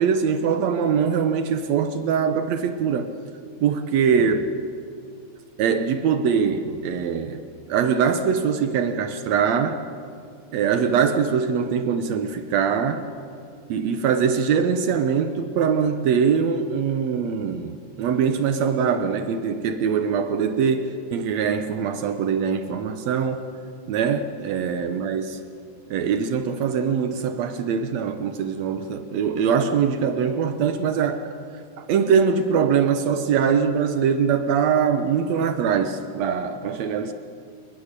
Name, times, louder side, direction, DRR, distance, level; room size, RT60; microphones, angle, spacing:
voice 1, 0.0-3.1 3.6-4.5 5.6-7.4 7.7-9.8 10.5-13.0 13.7-17.7 18.0-23.5 23.9-25.4 25.9-31.3 31.8-37.1, right 6 dB, 85° right, 1.5 m, -22 dB
29.0 x 20.0 x 6.7 m
omnidirectional pair, 4.4 m